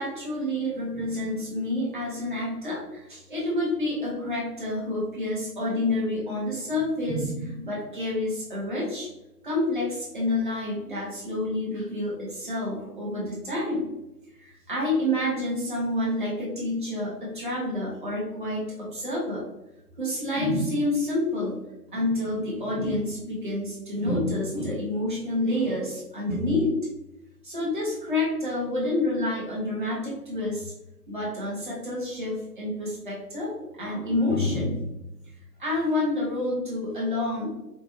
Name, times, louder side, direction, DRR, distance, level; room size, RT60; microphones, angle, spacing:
voice 1, 0.0-9.1 9.4-13.9 14.3-19.5 20.0-21.6 21.9-26.7 27.4-30.7 31.1-35.0 35.6-37.6, left 1 dB, 30° right, -5 dB, 1.3 m, -28 dB
5.1 x 2.5 x 3.1 m, 0.93 s
hypercardioid pair, 170°, 49 cm